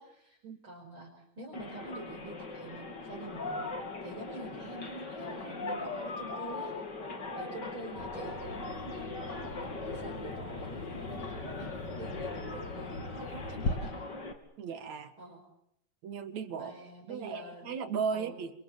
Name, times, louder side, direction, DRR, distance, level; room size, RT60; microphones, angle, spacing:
voice 1, 0.0-0.4 0.6-3.7 4.0-6.7 7.4-14.0 15.2-15.4 16.5-17.8 18.1-18.4, right 2 dB, 40° right, -2 dB, 6.2 m, -46 dB
sound 1, 1.5-14.3, left 3 dB, 35° left, 3.5 m, -40 dB
Bird vocalization bird call bird song, 8.0-13.7, left 3 dB, 55° left, 3.6 m, -41 dB
voice 2, 14.6-15.1 16.0-16.7 17.1-18.5, right 6 dB, 70° right, 10 dB, 3.2 m, -36 dB
28.5 x 27.5 x 7.5 m, 0.74 s
omnidirectional pair, 3.3 m